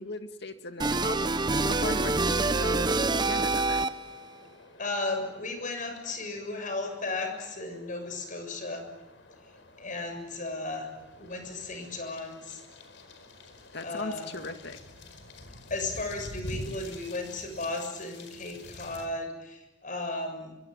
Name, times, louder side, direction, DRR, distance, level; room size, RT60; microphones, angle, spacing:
voice 1, 0.0-3.9 13.7-14.8, left 3 dB, 65° left, 7 dB, 2.2 m, -38 dB
sound 1, 0.8-4.2, right 3 dB, 25° right, 0.9 m, -26 dB
sound 2, 1.6-19.1, left 1 dB, 85° left, 4.6 m, -48 dB
voice 2, 4.8-8.9 9.8-12.6 13.8-14.3 15.7-20.5, left 2 dB, 45° left, 6 dB, 7.0 m, -35 dB
26.0 x 24.0 x 9.3 m, 0.99 s
head